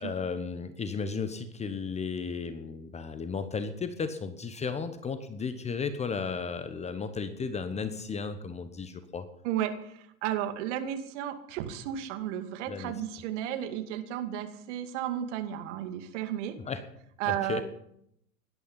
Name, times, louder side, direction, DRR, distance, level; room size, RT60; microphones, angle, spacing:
voice 1, 0.0-9.2 12.7-12.9 16.7-16.8 17.3-17.6, left 5 dB, 15° left, 10 dB, 1.1 m, -34 dB
voice 2, 9.4-16.6 17.2-17.6, right 11 dB, 50° right, 7 dB, 2.4 m, -33 dB
17.5 x 12.0 x 5.8 m, 0.75 s
hypercardioid pair, 105°, 46 cm